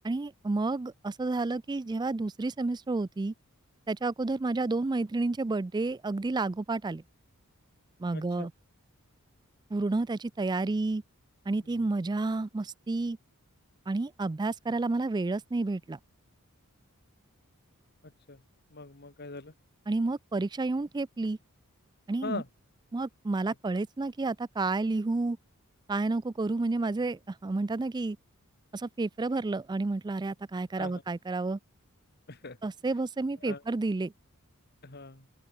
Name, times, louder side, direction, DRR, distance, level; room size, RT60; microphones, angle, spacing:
voice 1, 0.0-3.3 3.9-7.0 8.0-8.5 9.7-11.0 11.5-13.2 13.9-16.0 19.9-21.4 22.1-22.4 22.9-25.4 25.9-28.2 28.7-31.6 32.6-34.1, right 3 dB, 20° right, 0.3 m, -30 dB
voice 2, 8.1-8.5 18.0-18.4 18.7-19.5 22.2-22.5 30.8-31.0 32.3-32.6 33.4-33.6 34.8-35.3, left 3 dB, 50° left, 2.1 m, -41 dB
open air
head